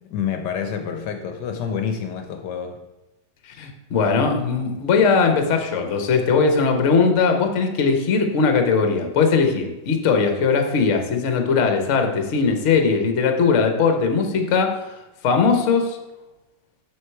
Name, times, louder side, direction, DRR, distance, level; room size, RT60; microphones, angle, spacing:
voice 1, 0.0-2.8, left 7 dB, 75° left, 6 dB, 1.3 m, -28 dB
voice 2, 3.5-14.8 15.2-16.0, left 5 dB, 50° left, 5 dB, 1.1 m, -19 dB
6.4 x 6.3 x 4.6 m, 1.0 s
omnidirectional pair, 1.9 m